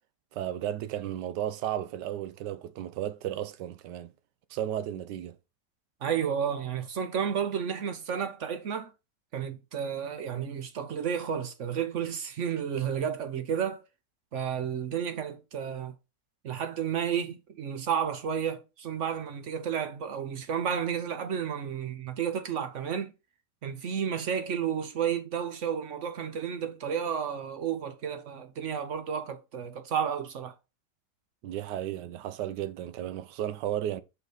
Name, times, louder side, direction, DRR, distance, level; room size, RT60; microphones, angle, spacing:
voice 1, 0.3-4.1 4.5-5.4 31.4-34.0, right 11 dB, 80° right, 1.3 m, -34 dB
voice 2, 6.0-8.9 9.3-13.8 14.3-15.9 16.4-23.1 23.6-30.5, right 8 dB, 55° right, 0.9 m, -32 dB
5.4 x 4.0 x 4.9 m
omnidirectional pair, 1.9 m